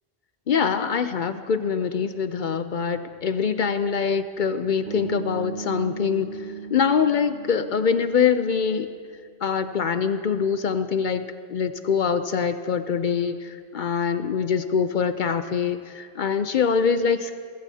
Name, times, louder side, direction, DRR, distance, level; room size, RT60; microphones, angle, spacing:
voice 1, 0.5-8.9 9.4-17.4, left 6 dB, 55° left, 10 dB, 0.6 m, -24 dB
Bass guitar, 4.9-8.9, right 5 dB, 70° right, 1.3 m, -38 dB
30.0 x 15.5 x 2.8 m, 2.1 s
omnidirectional pair, 1.1 m